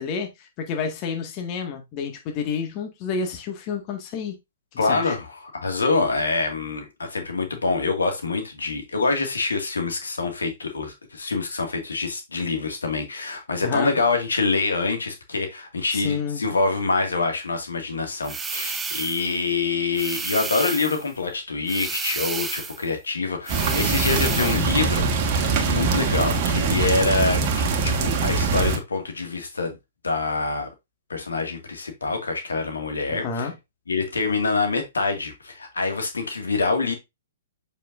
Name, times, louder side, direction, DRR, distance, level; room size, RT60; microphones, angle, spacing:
voice 1, 0.0-4.4 4.9-5.1 13.6-13.9 15.9-16.4 33.1-33.5, left 5 dB, 35° left, 1.7 m, -29 dB
voice 2, 4.8-29.8 30.0-30.7 31.1-33.5 33.9-36.9, left 3 dB, 80° left, 1.9 m, -26 dB
sound 1, 18.2-19.3 20.0-21.1 21.7-22.9 23.5-24.7, right 5 dB, 10° right, 0.6 m, -31 dB
sound 2, 23.5-28.8, right 4 dB, 40° right, 1.6 m, -23 dB
7.3 x 5.6 x 2.5 m
figure-of-eight pair, 120°, 0 cm